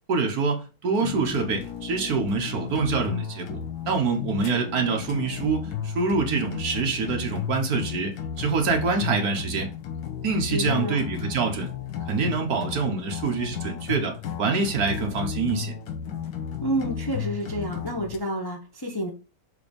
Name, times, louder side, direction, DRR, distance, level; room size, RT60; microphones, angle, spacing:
voice 1, 0.1-9.7 10.2-11.7 12.1-15.7, right 4 dB, 60° right, 1.4 m, -26 dB
sound 1, 1.0-18.2, left 8 dB, 65° left, 1.3 m, -34 dB
voice 2, 10.5-11.0 16.6-19.1, equal, 20° left, 0.7 m, -29 dB
6.7 x 2.9 x 5.1 m
omnidirectional pair, 1.9 m